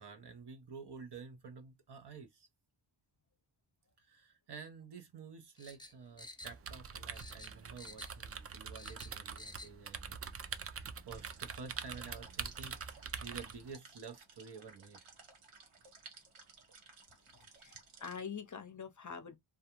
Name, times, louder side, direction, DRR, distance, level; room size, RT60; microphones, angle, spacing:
voice 1, 0.0-2.5 4.0-10.2 10.7-15.0, right 5 dB, 55° right, 0.8 m, -50 dB
sound 1, 5.6-6.9 7.1-8.3 8.5-9.7 10.1-10.2, left 2 dB, 10° left, 0.8 m, -51 dB
sound 2, 6.4-13.7, right 6 dB, 30° right, 0.4 m, -45 dB
sound 3, 11.1-18.2, right 4 dB, 80° right, 1.0 m, -57 dB
voice 2, 17.6-19.4, left 6 dB, 35° left, 0.6 m, -45 dB
2.3 x 2.3 x 2.9 m
cardioid pair, 45°, 50 cm